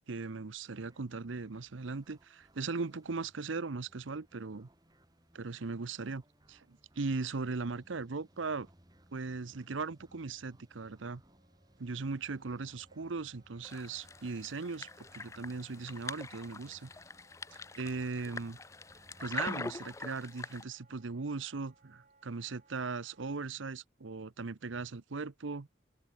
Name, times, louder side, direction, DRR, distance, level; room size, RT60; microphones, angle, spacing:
voice 1, 0.1-4.7 5.3-6.2 6.5-8.7 9.1-11.2 11.8-16.9 17.5-18.6 19.2-25.7, right 4 dB, 80° right, 0.8 m, -38 dB
sound 1, 0.7-20.0, right 1 dB, 20° right, 3.3 m, -64 dB
Wind instrument woodwind instrument, 11.2-23.3, right 3 dB, 40° right, 3.6 m, -69 dB
sound 2, 13.6-20.6, left 3 dB, 15° left, 0.3 m, -44 dB
open air
head